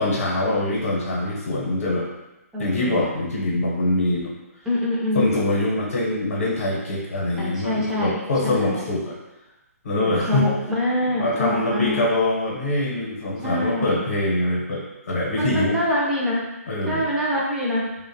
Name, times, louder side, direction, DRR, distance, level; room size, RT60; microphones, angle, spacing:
voice 1, 0.0-2.1 2.6-4.3 5.1-9.1 9.8-10.5 11.1-15.8 16.7-17.1, left 2 dB, 60° left, -3 dB, 0.7 m, -24 dB
voice 2, 0.5-0.9 2.5-3.0 4.7-5.4 7.4-8.2 8.4-8.8 10.0-12.0 13.4-14.0 15.3-16.4 16.9-17.8, left 1 dB, 5° right, -6 dB, 0.3 m, -25 dB
2.6 x 2.1 x 2.6 m, 1.0 s
figure-of-eight pair, 145°, 8 cm